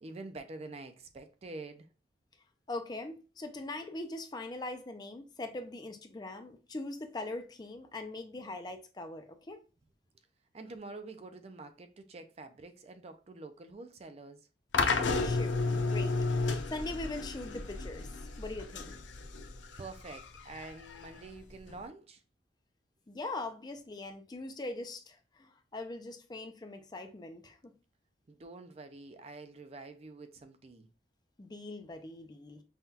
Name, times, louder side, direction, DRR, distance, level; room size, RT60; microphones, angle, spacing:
voice 1, 0.0-1.9 10.5-14.4 19.8-22.2 28.3-30.9, right 3 dB, 35° right, 0.4 m, -47 dB
voice 2, 2.7-9.6 15.2-18.1 18.4-19.0 23.1-27.7 31.4-32.6, left 2 dB, 25° left, 0.4 m, -41 dB
sound 1, 14.7-21.8, left 3 dB, 90° left, 0.6 m, -33 dB
5.6 x 2.3 x 2.7 m
head